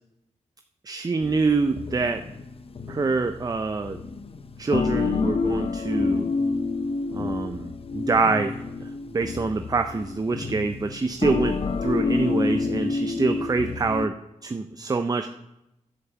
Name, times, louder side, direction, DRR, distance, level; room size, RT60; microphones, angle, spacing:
voice 1, 0.9-2.2 2.9-4.0 4.6-6.3 7.2-8.6 9.1-14.1 14.4-15.3, right 4 dB, 30° right, 7 dB, 0.5 m, -25 dB
sound 1, 1.2-14.1, left 4 dB, 45° left, 0.6 m, -28 dB
10.0 x 5.6 x 7.0 m, 0.89 s
cardioid pair, 75°, 13 cm